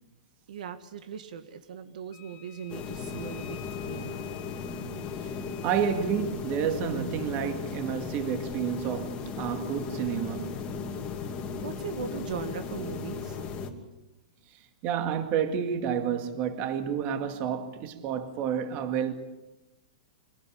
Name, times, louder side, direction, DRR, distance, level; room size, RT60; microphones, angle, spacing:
voice 1, 0.5-4.3 11.6-13.6, right 7 dB, 70° right, 2.0 m, -39 dB
Wind instrument woodwind instrument, 2.1-6.1, left 13 dB, 40° left, 2.5 m, -50 dB
sound 1, 2.7-13.7, left 5 dB, 25° left, 2.5 m, -36 dB
voice 2, 5.6-11.6 14.8-19.1, right 8 dB, 35° right, 2.2 m, -30 dB
26.0 x 17.0 x 8.7 m
hypercardioid pair, 150°, 4 cm